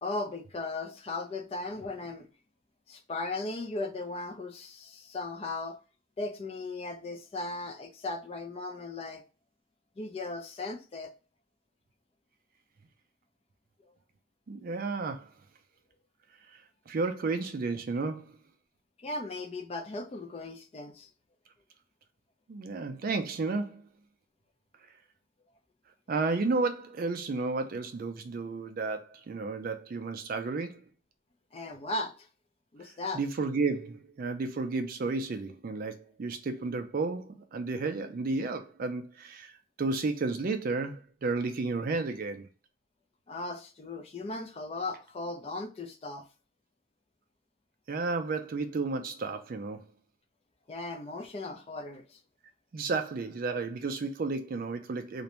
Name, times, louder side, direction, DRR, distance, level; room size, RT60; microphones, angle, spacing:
voice 1, 0.0-2.3 2.9-5.8 6.2-9.2 10.0-11.1 19.0-21.1 31.5-32.1 32.7-33.2 43.3-46.3 50.7-52.2, left 2 dB, 30° left, 0.3 m, -37 dB
voice 2, 14.5-15.3 16.9-18.4 22.5-23.9 26.1-30.8 33.1-42.5 47.9-49.8 52.7-55.2, right 3 dB, 45° right, 0.4 m, -32 dB
2.5 x 2.1 x 2.9 m
head